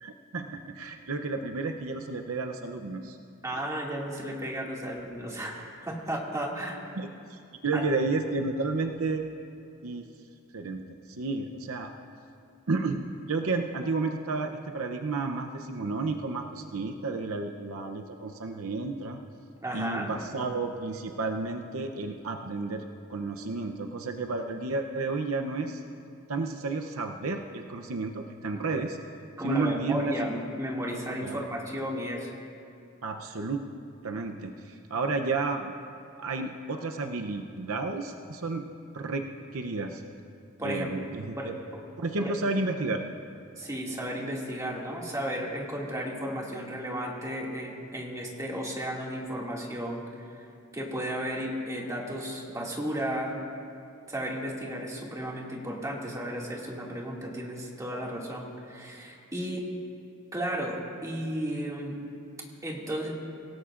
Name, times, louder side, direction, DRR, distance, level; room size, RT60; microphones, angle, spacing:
voice 1, 0.0-3.2 7.0-9.3 9.8-10.1 10.5-11.9 12.7-19.2 19.7-25.8 26.3-29.0 29.4-30.1 31.2-31.4 33.0-33.7 34.0-35.7 36.2-38.6 38.9-40.0 40.6-41.5 42.0-43.0, right 3 dB, 70° right, 4 dB, 0.7 m, -32 dB
voice 2, 3.4-6.9 7.7-7.8 19.6-20.1 29.4-32.3 40.6-41.1 41.4-41.5 42.2-42.3 43.6-50.5 50.7-53.4 54.1-59.7 60.3-62.0 62.6-63.1, equal, 15° right, -3 dB, 2.2 m, -34 dB
25.0 x 17.5 x 2.5 m, 2.5 s
head